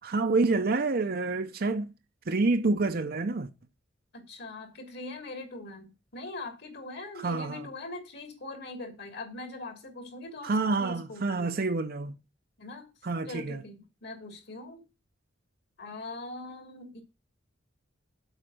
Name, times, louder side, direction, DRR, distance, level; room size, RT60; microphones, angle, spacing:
voice 1, 0.0-1.9 2.3-3.5 7.2-7.6 10.4-12.2 13.0-13.6, right 3 dB, 50° right, 0.7 m, -27 dB
voice 2, 4.1-11.8 12.6-12.9 13.2-14.8 15.8-17.0, left 2 dB, 60° left, 2.9 m, -42 dB
8.1 x 5.3 x 7.6 m
head